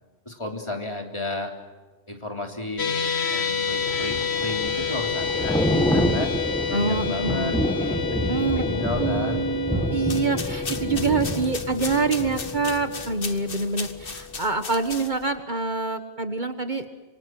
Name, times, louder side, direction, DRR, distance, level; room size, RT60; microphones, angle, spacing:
voice 1, 0.3-1.5 2.1-3.0 3.3-6.3 6.7-9.5, left 1 dB, 25° left, 3 dB, 3.5 m, -32 dB
sound 1, 2.8-15.1, left 6 dB, 70° left, 1.6 m, -30 dB
Thunder / Rain, 3.6-13.6 13.9-14.2, equal, 5° left, 2.2 m, -28 dB
voice 2, 6.7-7.5 8.3-8.6 9.0-16.8, right 4 dB, 45° right, 8 dB, 1.5 m, -26 dB
sound 2, 10.0-15.4, left 5 dB, 55° left, 1.5 m, -37 dB
27.0 x 25.5 x 7.8 m, 1.3 s
omnidirectional pair, 1.1 m